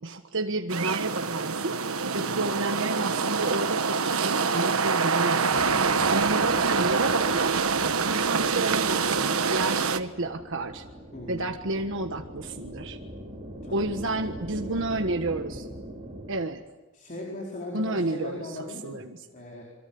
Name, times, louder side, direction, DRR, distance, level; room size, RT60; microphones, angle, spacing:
voice 1, 0.0-5.7 6.1-7.5 8.0-10.8 11.3-13.0 13.7-15.7 16.3-16.6 17.7-19.2, right 2 dB, 60° right, 4 dB, 1.5 m, -31 dB
sound 1, 0.7-10.0, right 5 dB, 80° right, 1.4 m, -25 dB
voice 2, 2.2-2.5 11.1-11.5 13.6-14.3 14.6-15.1 16.9-19.6, left 1 dB, 40° left, -1 dB, 4.8 m, -39 dB
sound 2, 5.5-16.3, equal, 25° right, 4.7 m, -42 dB
27.5 x 23.5 x 8.8 m, 1.1 s
head